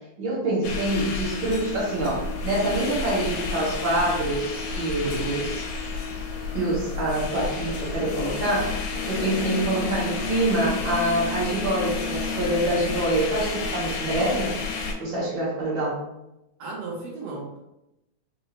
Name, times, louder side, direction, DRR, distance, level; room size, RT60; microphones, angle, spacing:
voice 1, 0.2-5.6 6.5-14.5 15.0-16.0, right 1 dB, 60° right, -7 dB, 1.4 m, -26 dB
sound 1, 0.6-14.9, left 4 dB, 80° left, 1.7 m, -31 dB
voice 2, 5.0-5.4 16.6-17.6, right 3 dB, 75° right, -4 dB, 1.4 m, -34 dB
5.0 x 2.0 x 2.8 m, 0.88 s
omnidirectional pair, 3.3 m